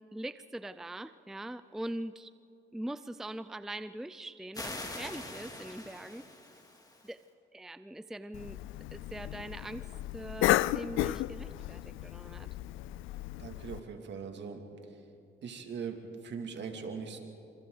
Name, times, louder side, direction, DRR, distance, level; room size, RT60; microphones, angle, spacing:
voice 1, 0.1-2.3 2.7-6.3 7.0-7.2 7.5-8.6 8.9-9.8 10.1-12.5, right 1 dB, ahead, 13 dB, 0.5 m, -42 dB
sound 1, 4.5-7.1, left 2 dB, 20° left, 2.8 m, -43 dB
Cough, 8.3-13.8, left 16 dB, 85° left, 0.4 m, -33 dB
voice 2, 13.4-14.6 15.4-16.0 16.2-17.2, right 6 dB, 65° right, 4 dB, 2.6 m, -40 dB
27.0 x 27.0 x 4.0 m, 2.6 s
cardioid pair, 90°, 20 cm